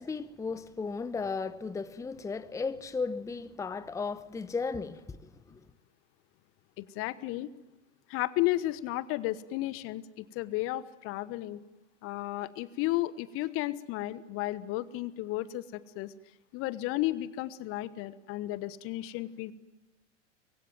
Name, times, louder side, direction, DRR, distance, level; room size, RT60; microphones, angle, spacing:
voice 1, 0.0-5.6, left 4 dB, 10° left, 1.0 m, -35 dB
voice 2, 6.8-7.5 8.1-11.6 12.0-16.1 16.5-19.5, left 16 dB, 35° left, 1.2 m, -33 dB
25.0 x 23.0 x 9.3 m
figure-of-eight pair, 90°, 36 cm